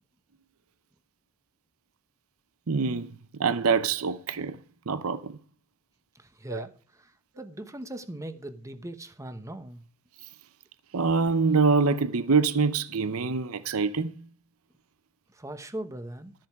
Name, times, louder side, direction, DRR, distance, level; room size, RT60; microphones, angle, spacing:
voice 1, 2.7-3.1 3.4-4.6 4.9-5.4 6.5-6.6 10.9-14.1, right 4 dB, 65° right, 0.7 m, -25 dB
voice 2, 6.1-9.8 15.3-16.3, right 1 dB, 15° right, 1.1 m, -40 dB
13.0 x 7.6 x 4.8 m
head